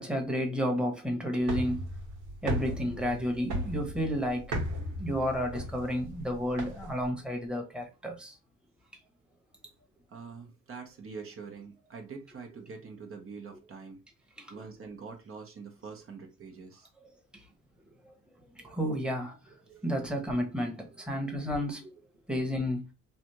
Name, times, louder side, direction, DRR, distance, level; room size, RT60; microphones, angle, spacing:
voice 1, 0.0-1.9 2.4-8.4 12.6-12.7 14.4-14.6 18.0-18.1 18.5-21.9 22.3-22.8, equal, 5° right, 1.0 m, -32 dB
sound 1, 1.4-7.1, right 1 dB, 85° right, 1.4 m, -36 dB
voice 2, 10.1-14.0 14.5-16.9, right 5 dB, 45° right, 0.9 m, -45 dB
3.3 x 2.5 x 2.9 m
cardioid pair, 90°, 30 cm